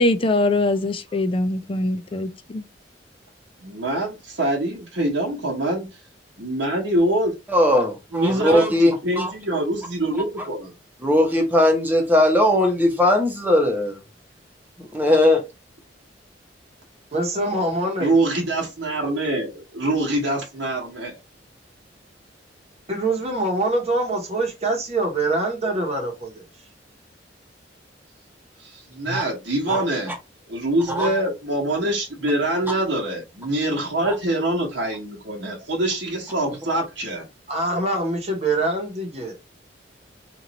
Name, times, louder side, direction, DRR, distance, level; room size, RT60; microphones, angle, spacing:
voice 1, 0.0-2.6, left 2 dB, 30° left, 0.4 m, -22 dB
voice 2, 3.6-5.9 6.4-7.3 8.1-8.7 9.0-10.7 18.0-21.2 28.6-30.1 30.5-37.2, right 1 dB, 75° right, 1.0 m, -24 dB
voice 3, 7.5-9.3 11.0-14.0 14.9-15.4 29.1-29.2 29.7-29.8 30.9-31.3, left 1 dB, 10° right, 0.9 m, -19 dB
voice 4, 17.1-18.1 22.9-26.4 37.5-39.3, right 2 dB, 35° right, 1.0 m, -24 dB
3.0 x 2.5 x 3.9 m
head